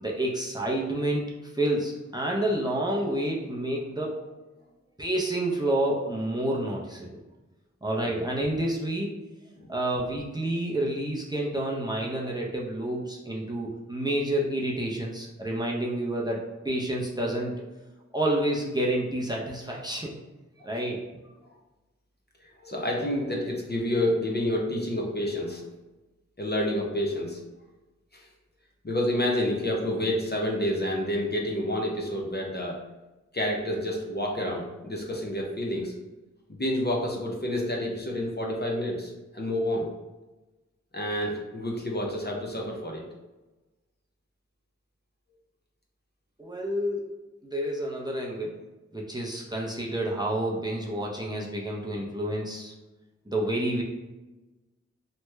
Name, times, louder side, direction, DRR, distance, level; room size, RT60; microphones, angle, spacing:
voice 1, 0.0-4.2 5.0-7.2 7.8-9.1 9.7-17.5 18.1-20.1 20.6-21.0 46.4-48.6 48.9-52.7 53.3-53.8, right 1 dB, 15° right, -2 dB, 0.6 m, -29 dB
voice 2, 22.6-25.6 26.4-27.4 28.1-28.3 28.8-32.8 33.3-35.9 36.5-39.9 40.9-43.0, left 1 dB, 35° left, -1 dB, 0.7 m, -29 dB
3.0 x 2.2 x 3.2 m, 1.1 s
wide cardioid pair, 40°, 30 cm